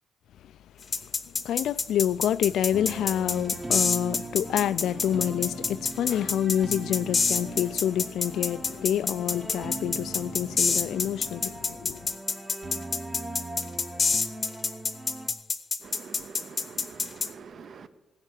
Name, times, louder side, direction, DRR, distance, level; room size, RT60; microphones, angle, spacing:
sound 1, 0.9-17.3, left 4 dB, 35° left, 0.8 m, -27 dB
voice 1, 1.3-12.1, left 10 dB, 80° left, 0.3 m, -28 dB
sound 2, 2.7-15.3, right 2 dB, 20° right, 0.9 m, -40 dB
voice 2, 15.8-17.9, right 6 dB, 50° right, 0.8 m, -45 dB
16.5 x 5.7 x 7.6 m
cardioid pair, 140°, 0 cm